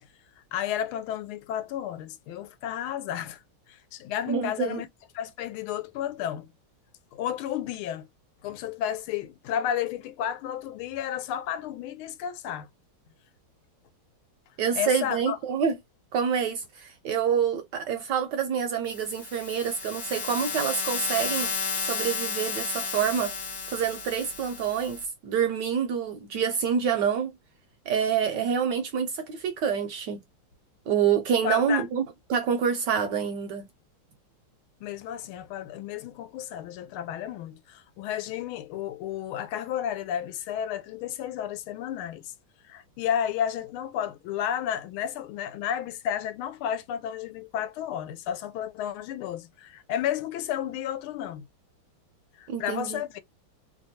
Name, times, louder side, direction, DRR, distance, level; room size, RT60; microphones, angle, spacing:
voice 1, 0.5-3.4 3.7-4.9 5.1-6.5 7.1-8.1 8.4-12.7 14.8-15.4 31.4-31.8 34.8-42.3 42.6-51.5 52.4-53.2, left 10 dB, 85° left, 1.4 m, -32 dB
voice 2, 4.3-4.8 14.6-15.8 16.1-21.5 21.8-23.3 23.7-27.3 27.9-30.2 30.9-32.0 32.3-33.7 52.5-53.0, right 7 dB, 70° right, 1.0 m, -27 dB
sound 1, 18.9-25.1, left 5 dB, 55° left, 0.8 m, -32 dB
3.3 x 2.2 x 2.7 m
omnidirectional pair, 2.3 m